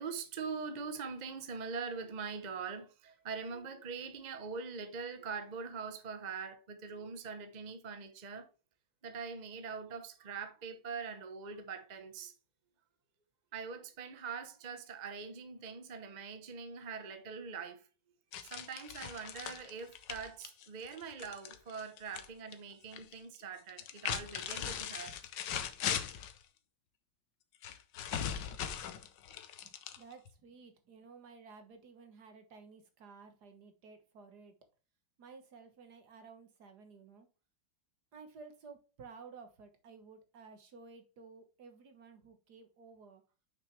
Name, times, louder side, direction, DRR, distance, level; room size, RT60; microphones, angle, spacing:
voice 1, 0.0-8.5 9.0-12.3 13.5-17.8 18.4-25.2, right 5 dB, 35° right, 0.7 m, -43 dB
sound 1, 18.3-22.3 22.5-23.1 23.7-26.4 27.6-30.3, left 9 dB, 75° left, 1.5 m, -39 dB
voice 2, 29.6-34.6 35.2-37.3 38.1-43.2, right 5 dB, 60° right, 1.8 m, -54 dB
6.6 x 5.9 x 3.2 m
omnidirectional pair, 2.0 m